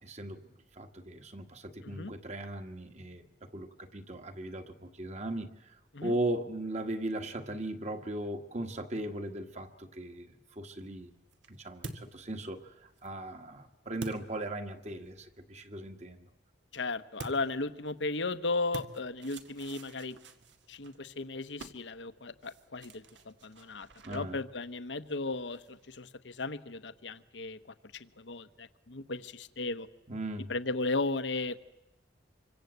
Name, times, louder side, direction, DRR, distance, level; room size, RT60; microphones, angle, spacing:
voice 1, 0.0-5.8 6.0-11.1 11.5-16.3 24.0-24.4 30.1-30.5, right 1 dB, 40° right, 6 dB, 1.6 m, -38 dB
sound 1, 10.7-15.1 17.2-26.0, right 2 dB, 80° right, 1.9 m, -50 dB
voice 2, 16.7-20.2 20.7-27.6 27.9-29.9 30.5-31.6, left 3 dB, 75° left, 12 dB, 1.1 m, -36 dB
26.5 x 24.5 x 8.1 m, 0.98 s
head